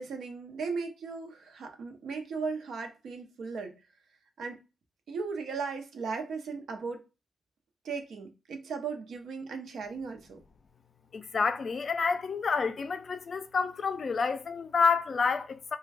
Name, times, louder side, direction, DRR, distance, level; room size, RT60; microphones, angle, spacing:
voice 1, 0.0-3.7 4.4-4.6 5.1-7.0 7.8-10.4, right 5 dB, 85° right, 0.6 m, -37 dB
voice 2, 11.1-15.8, left 5 dB, 50° left, 0.3 m, -29 dB
3.3 x 2.2 x 3.2 m
wide cardioid pair, 115°, 0 cm